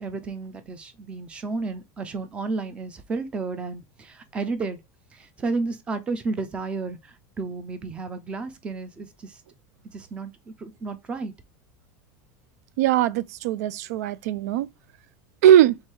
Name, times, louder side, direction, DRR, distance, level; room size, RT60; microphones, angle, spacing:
voice 1, 0.0-4.8 5.1-9.4 9.9-11.3, right 3 dB, 15° right, 0.4 m, -32 dB
voice 2, 12.8-14.7 15.4-15.8, right 11 dB, 90° right, 0.4 m, -19 dB
3.3 x 3.2 x 4.5 m
supercardioid pair, 180°, 9 cm